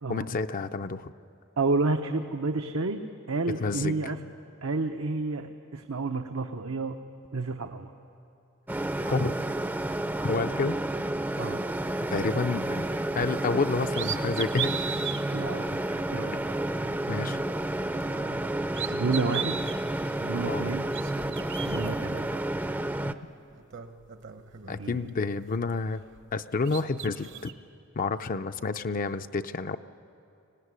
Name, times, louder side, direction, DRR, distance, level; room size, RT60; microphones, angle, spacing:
voice 1, 0.1-1.1 3.6-3.9 9.0-9.3 10.2-10.8 12.1-12.9 13.2-14.8 17.1-17.4 18.3-18.4 20.5-20.7 23.1-23.2 24.7-26.0 26.3-27.5 28.0-29.8, left 4 dB, 40° left, 9 dB, 0.5 m, -29 dB
voice 2, 1.6-3.0 3.3-4.2 4.6-7.0 7.3-7.9 11.4-11.6 15.3-16.3 18.9-19.6 20.2-20.9 21.6-22.4 24.8-25.0, right 3 dB, 80° right, 5 dB, 0.9 m, -30 dB
sound 1, 8.7-23.1, right 1 dB, 10° right, 0.5 m, -31 dB
sound 2, 13.4-13.5 13.9-15.2 15.9-16.0 17.7-18.4 18.7-19.8 20.7-21.9 23.0-23.1 23.5-25.2 25.5-26.4 26.6-27.5, right 9 dB, 60° right, 1.1 m, -37 dB
24.5 x 17.5 x 9.6 m, 2.6 s
head